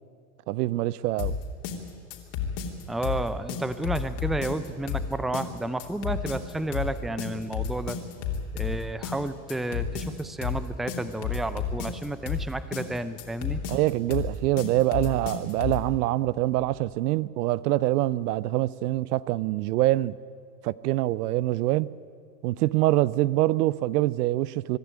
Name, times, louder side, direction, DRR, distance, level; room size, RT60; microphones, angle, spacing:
voice 1, 0.5-1.4 13.7-20.1 20.6-22.0 22.4-24.8, right 16 dB, 70° right, 0.6 m, -25 dB
sound 1, 1.2-15.9, left 7 dB, 55° left, 3.2 m, -31 dB
voice 2, 2.9-8.0 8.5-13.6, right 1 dB, ahead, 0.6 m, -31 dB
23.5 x 12.0 x 9.7 m
hypercardioid pair, 105°, 48 cm